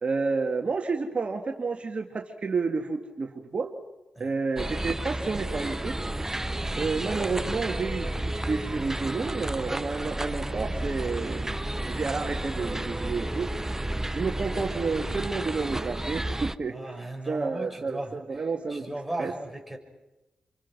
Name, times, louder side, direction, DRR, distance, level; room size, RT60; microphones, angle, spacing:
voice 1, 0.0-3.7 4.2-6.0 6.8-11.5 11.9-13.5 14.1-16.8 17.3-19.3, right 4 dB, 50° right, 3 dB, 2.0 m, -30 dB
sound 1, 4.6-16.6, right 1 dB, 15° right, 0.8 m, -32 dB
sound 2, 6.1-12.9, left 4 dB, 80° left, 2.7 m, -48 dB
voice 2, 16.7-19.8, right 1 dB, ahead, 2 dB, 5.8 m, -37 dB
27.0 x 24.5 x 6.1 m, 1.0 s
cardioid pair, 50°, 3 cm